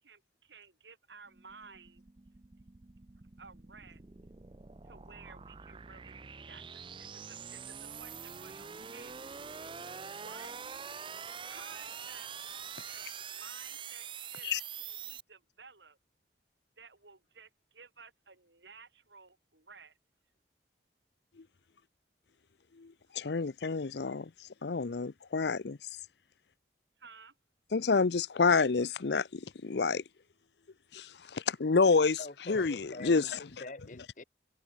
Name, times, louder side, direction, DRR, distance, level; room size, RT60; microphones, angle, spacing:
voice 1, 0.0-2.0 3.4-4.0 4.8-6.2 6.5-9.3 10.0-10.5 11.4-12.3 12.9-14.5 14.8-16.0 16.8-20.0 27.0-27.4, right 5 dB, 80° right, 5.0 m, -55 dB
sound 1, 1.3-15.2, right 7 dB, 30° right, 0.5 m, -45 dB
voice 2, 22.8-25.8 27.7-30.0 30.9-32.2 32.5-33.5, left 4 dB, 75° left, 0.6 m, -29 dB
voice 3, 32.2-33.3 33.6-34.2, left 2 dB, 45° left, 1.3 m, -45 dB
head